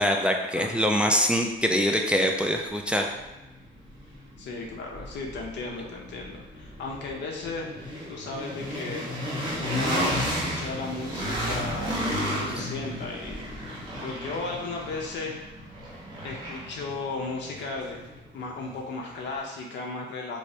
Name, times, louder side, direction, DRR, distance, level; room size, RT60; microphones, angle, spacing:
voice 1, 0.0-3.1, equal, 5° right, 2 dB, 0.3 m, -24 dB
sound 1, 2.3-2.4 2.8-18.8, equal, 25° right, 1.0 m, -33 dB
voice 2, 4.4-7.7 8.1-9.0 9.6-13.7 14.0-15.4 16.2-18.0 18.3-20.4, left 3 dB, 65° left, -1 dB, 0.6 m, -35 dB
3.1 x 3.0 x 2.7 m, 1.0 s
cardioid pair, 90°, 20 cm